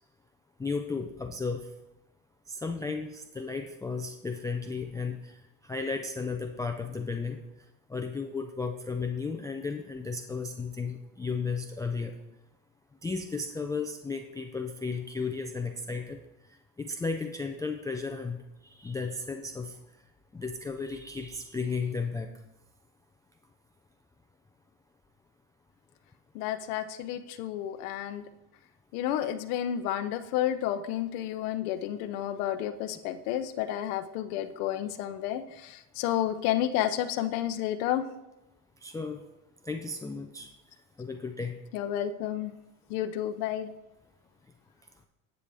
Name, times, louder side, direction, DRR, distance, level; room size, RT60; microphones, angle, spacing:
voice 1, 0.6-1.7 2.5-7.4 7.9-12.2 13.0-16.2 16.5-19.8 20.3-22.3 38.8-39.2 39.6-40.5 41.0-41.5, left 4 dB, 10° left, 3 dB, 0.4 m, -34 dB
voice 2, 26.3-28.2 28.9-38.0 41.7-42.5 42.9-43.7, left 11 dB, 80° left, 8 dB, 0.8 m, -31 dB
10.0 x 8.1 x 3.5 m, 0.95 s
supercardioid pair, 120°, 45 cm